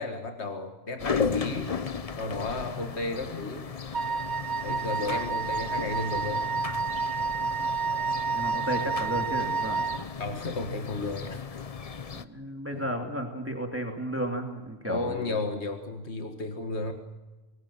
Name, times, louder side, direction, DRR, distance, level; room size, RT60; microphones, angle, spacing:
voice 1, 0.0-1.8 2.2-3.7 4.6-6.5 10.2-11.6 12.7-12.9 14.8-16.9, left 3 dB, 90° left, 6 dB, 2.0 m, -33 dB
sound 1, 1.0-12.2, left 5 dB, 35° left, 0.8 m, -35 dB
Wind instrument woodwind instrument, 3.9-10.0, right 5 dB, 80° right, 1.4 m, -30 dB
voice 2, 8.3-9.8 12.1-15.4, right 1 dB, 10° right, 3 dB, 2.5 m, -33 dB
25.5 x 21.0 x 7.3 m, 1.2 s
omnidirectional pair, 1.1 m